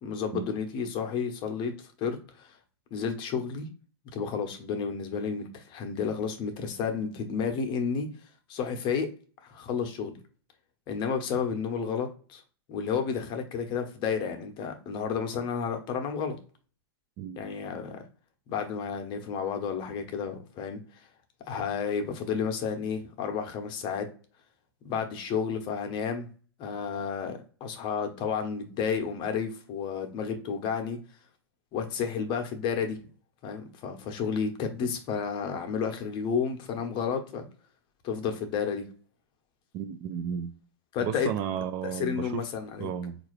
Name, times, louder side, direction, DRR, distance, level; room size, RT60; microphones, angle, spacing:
voice 1, 0.0-2.6 2.9-3.7 4.1-8.1 8.5-9.1 9.4-10.2 10.9-12.4 12.7-16.4 17.4-18.0 18.5-20.8 21.5-24.1 24.8-26.3 26.6-31.0 31.7-33.0 33.4-37.4 38.0-38.9 40.9-41.3 41.8-42.9, left 6 dB, 35° left, 0.8 m, -31 dB
voice 2, 39.7-40.5 41.0-42.4 42.8-43.2, right 8 dB, 40° right, 0.4 m, -33 dB
3.6 x 2.5 x 3.1 m
hypercardioid pair, 110°, 14 cm